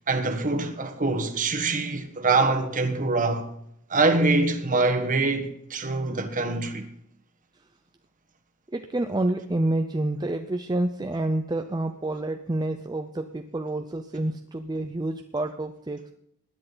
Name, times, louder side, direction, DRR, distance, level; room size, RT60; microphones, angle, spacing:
voice 1, 0.1-3.5 3.9-6.8, right 3 dB, 35° right, 1.4 m, -24 dB
voice 2, 8.7-16.1, right 1 dB, 20° right, 0.5 m, -28 dB
20.0 x 10.0 x 4.0 m
head